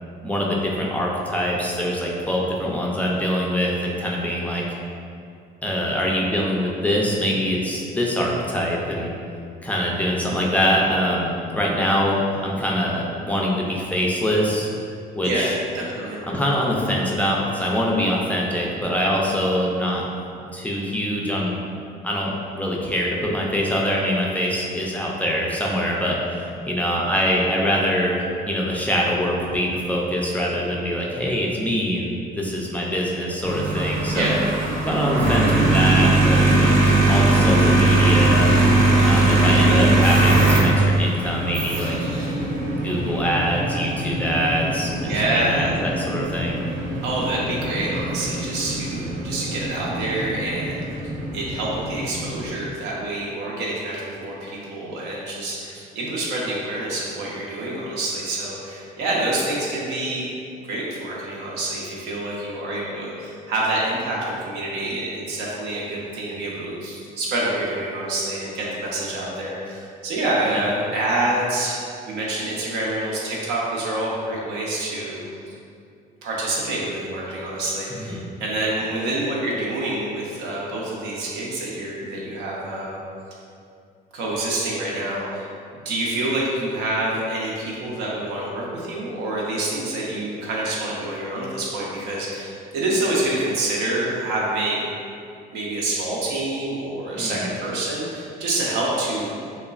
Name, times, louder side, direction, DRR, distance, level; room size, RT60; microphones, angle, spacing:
voice 1, 0.2-4.6 5.6-9.1 9.6-14.7 15.2-15.5 16.3-20.0 20.5-21.6 22.0-34.3 34.8-38.5 39.0-42.1 42.8-46.6 70.5-70.6 77.9-78.3 97.1-97.5, equal, 10° left, -3 dB, 0.3 m, -24 dB
voice 2, 15.2-16.2 34.1-34.3 35.6-35.8 39.7-39.8 45.0-45.7 47.0-51.0 51.3-60.3 60.7-71.8 72.1-75.2 75.5-75.6 76.2-83.0 84.1-94.8 95.5-99.3, right 1 dB, 90° right, -4 dB, 0.6 m, -27 dB
sound 1, 33.4-52.5, right 2 dB, 55° right, 0.7 m, -21 dB
3.0 x 2.1 x 2.4 m, 2.4 s
cardioid pair, 110°, 17 cm